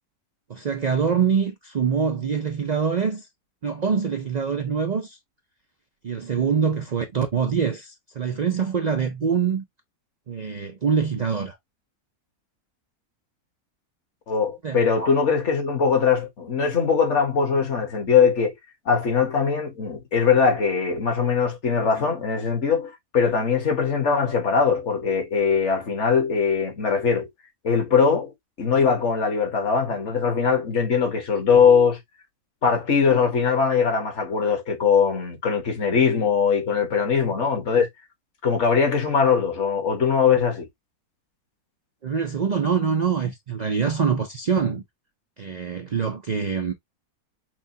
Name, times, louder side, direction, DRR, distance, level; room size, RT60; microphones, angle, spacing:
voice 1, 0.5-3.3 3.6-5.2 6.0-9.6 10.3-11.6 14.6-15.1 42.0-44.8 45.4-46.7, right 6 dB, 85° right, 0.3 m, -24 dB
voice 2, 14.3-18.5 18.8-27.3 27.6-28.3 28.6-32.0 32.6-37.9 38.4-40.7, left 6 dB, 55° left, 1.3 m, -21 dB
6.0 x 2.2 x 2.7 m
omnidirectional pair, 1.6 m